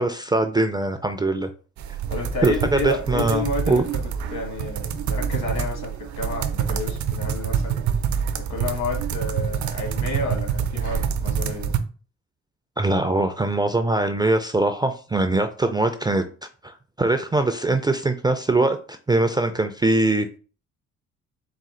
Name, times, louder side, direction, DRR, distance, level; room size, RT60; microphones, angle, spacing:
voice 1, 0.0-1.5 2.4-3.9 12.8-16.3 16.6-20.4, right 2 dB, 15° right, 0.3 m, -22 dB
sound 1, 1.8-11.8, right 7 dB, 70° right, 0.6 m, -26 dB
voice 2, 2.1-3.9 4.3-7.8 8.3-11.7, left 3 dB, 65° left, 1.5 m, -30 dB
4.2 x 2.4 x 3.7 m
cardioid pair, 90°, 30 cm